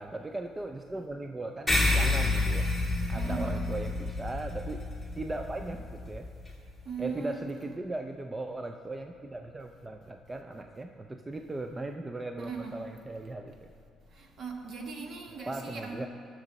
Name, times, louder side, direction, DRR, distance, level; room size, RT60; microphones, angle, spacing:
voice 1, 0.0-2.7 3.1-4.8 5.1-6.3 7.0-13.7 15.5-16.1, right 2 dB, 20° right, 5 dB, 0.4 m, -38 dB
sound 1, 1.7-6.5, left 2 dB, ahead, 2.4 m, -29 dB
voice 2, 3.1-3.6 6.8-7.4 12.4-12.7 14.2-16.1, right 4 dB, 55° right, 2 dB, 1.5 m, -38 dB
18.5 x 6.4 x 4.1 m, 2.3 s
cardioid pair, 105°, 0 cm